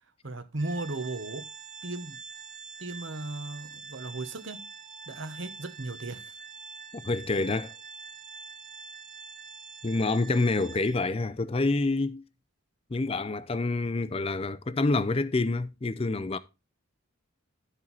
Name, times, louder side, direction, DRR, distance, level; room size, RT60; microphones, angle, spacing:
voice 1, 0.2-1.5 1.8-2.2 2.8-4.7 5.1-6.3, right 2 dB, 60° right, 1.1 m, -36 dB
Organ, 0.6-11.2, right 5 dB, 40° right, 0.9 m, -45 dB
voice 2, 6.9-7.7 9.8-12.2 12.9-16.4, left 3 dB, 25° left, 0.4 m, -27 dB
13.0 x 4.5 x 4.1 m
head